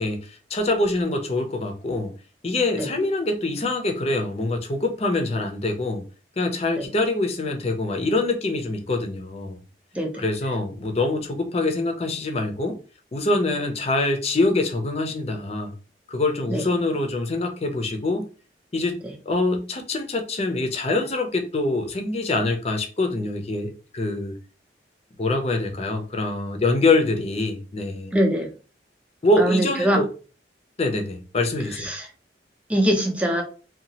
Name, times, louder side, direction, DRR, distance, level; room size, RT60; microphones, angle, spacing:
voice 1, 0.0-2.1 2.4-6.0 6.4-9.6 10.1-12.8 13.1-15.7 16.1-18.2 18.7-24.3 25.2-28.1 29.2-30.1 30.8-31.9, left 2 dB, 35° left, 0.6 m, -24 dB
voice 2, 9.9-10.2 16.5-16.6 19.0-19.1 28.1-28.5 29.4-30.0 31.8-32.1 32.7-33.4, equal, 10° right, 0.6 m, -22 dB
2.8 x 2.3 x 2.8 m
head